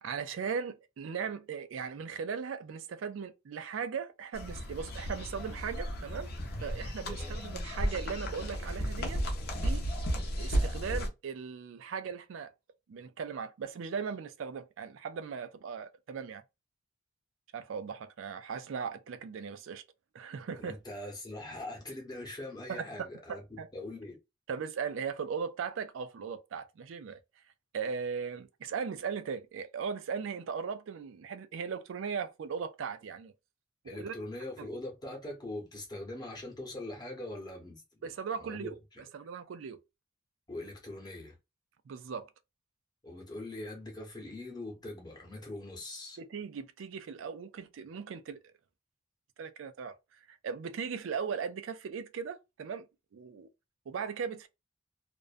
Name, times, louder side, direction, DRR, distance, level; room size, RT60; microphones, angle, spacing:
voice 1, 0.0-6.3 6.6-9.2 9.6-9.9 10.4-12.5 12.9-16.4 17.5-19.8 20.1-20.8 22.7-22.8 23.3-23.7 24.5-27.2 27.7-33.3 33.8-34.1 34.6-34.7 38.0-38.7 39.1-39.8 41.9-42.3 46.2-48.4 49.4-49.9 50.4-52.8 53.1-53.5 53.9-54.5, right 6 dB, 90° right, 0.4 m, -38 dB
sound 1, 4.3-11.1, equal, 55° left, 0.7 m, -34 dB
voice 2, 7.0-7.4 20.5-24.2 33.8-38.1 38.4-39.0 40.5-41.4 43.0-46.2, left 1 dB, 20° left, 0.9 m, -42 dB
2.5 x 2.1 x 2.5 m
head